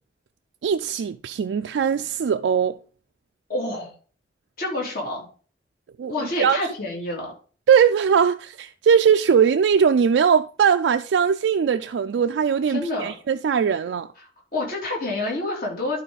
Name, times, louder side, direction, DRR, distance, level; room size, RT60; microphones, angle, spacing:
voice 1, 0.6-2.8 6.0-6.6 7.7-14.1, right 7 dB, 85° right, 0.3 m, -20 dB
voice 2, 3.5-3.9 4.6-5.3 6.1-7.3 12.7-13.1 14.2-16.0, left 2 dB, 55° left, 3.0 m, -28 dB
11.5 x 4.3 x 3.9 m
head